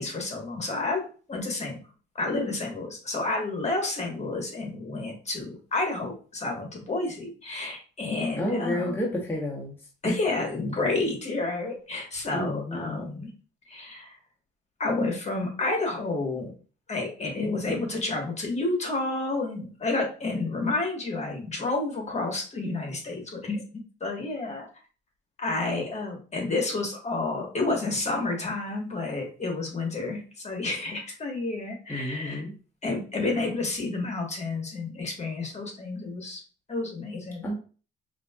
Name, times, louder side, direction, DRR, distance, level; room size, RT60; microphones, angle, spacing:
voice 1, 0.0-1.8 2.1-9.0 10.0-13.3 13.7-14.2 14.8-16.5 16.9-23.6 24.0-24.7 25.4-32.4 32.8-36.4 36.7-37.5, left 2 dB, 35° left, 1 dB, 1.3 m, -30 dB
voice 2, 8.4-9.8 10.0-10.1 12.3-13.1 31.9-32.5 37.4-37.5, left 1 dB, 10° left, -3 dB, 1.0 m, -30 dB
4.9 x 2.7 x 2.3 m, 0.37 s
cardioid pair, 90°, 20 cm